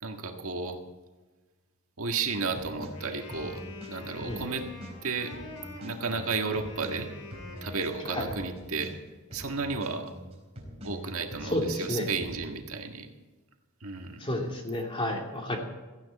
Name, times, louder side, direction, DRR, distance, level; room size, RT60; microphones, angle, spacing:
voice 1, 0.0-0.8 2.0-3.6 3.9-4.6 5.0-5.3 5.8-7.1 7.6-8.9 9.3-10.1 10.8-13.1 13.8-14.2, right 4 dB, 70° right, 3 dB, 1.7 m, -33 dB
sound 1, 2.3-12.4, equal, 30° right, 4.0 m, -44 dB
Wind instrument woodwind instrument, 2.8-8.6, left 2 dB, 85° left, 3.9 m, -46 dB
voice 2, 11.4-12.1 14.2-15.6, left 1 dB, 25° left, 1 dB, 2.7 m, -31 dB
17.0 x 14.5 x 4.2 m, 1.3 s
head